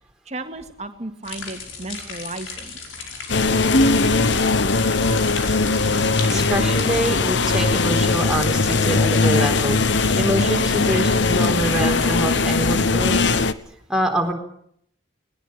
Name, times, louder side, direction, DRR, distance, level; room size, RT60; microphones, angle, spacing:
voice 1, 0.3-2.8, right 2 dB, 35° right, 6 dB, 2.2 m, -34 dB
sound 1, 1.2-7.1, left 4 dB, 80° left, 5.2 m, -35 dB
sound 2, 3.3-13.5, left 3 dB, 65° left, 1.1 m, -19 dB
voice 2, 6.2-13.3 13.9-14.3, right 1 dB, 5° right, 1 dB, 3.8 m, -25 dB
20.0 x 19.5 x 8.9 m, 0.70 s
head